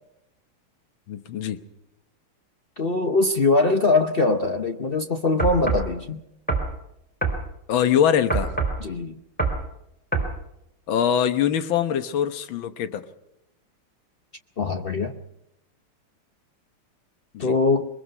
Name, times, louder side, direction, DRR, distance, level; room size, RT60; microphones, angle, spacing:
voice 1, 1.1-1.6 7.7-8.5 10.9-13.0 17.3-17.6, left 9 dB, 65° left, 11 dB, 1.9 m, -23 dB
voice 2, 2.8-6.2 8.8-9.2 14.6-15.1 17.4-17.9, left 3 dB, 85° left, 7 dB, 0.5 m, -22 dB
sound 1, 5.4-5.9 6.5-6.7 7.2-7.4 8.3-8.8 9.4-9.6 10.1-10.3, right 3 dB, 5° left, 3.3 m, -24 dB
23.5 x 22.0 x 5.5 m, 0.85 s
omnidirectional pair, 2.4 m